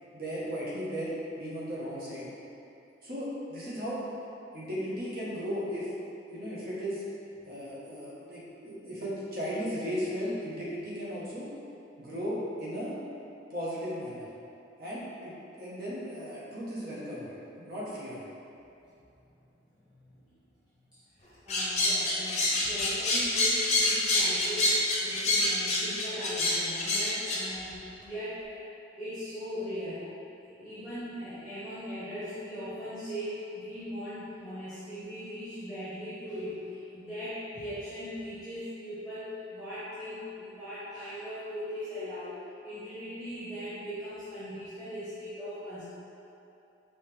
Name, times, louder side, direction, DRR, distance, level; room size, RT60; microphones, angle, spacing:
voice 1, 0.1-2.3 3.0-4.1 4.5-5.9 6.3-7.0 7.4-11.5 12.0-12.9 13.5-14.3 14.8-17.3 17.6-18.3, equal, 50° right, -8 dB, 1.1 m, -36 dB
voice 2, 21.2-28.6 29.0-30.0 30.4-42.4 42.6-45.8, equal, 5° right, -14 dB, 1.0 m, -39 dB
sound 1, 21.5-27.4, left 2 dB, 35° left, 0.7 m, -26 dB
5.5 x 2.9 x 3.3 m, 2.8 s
head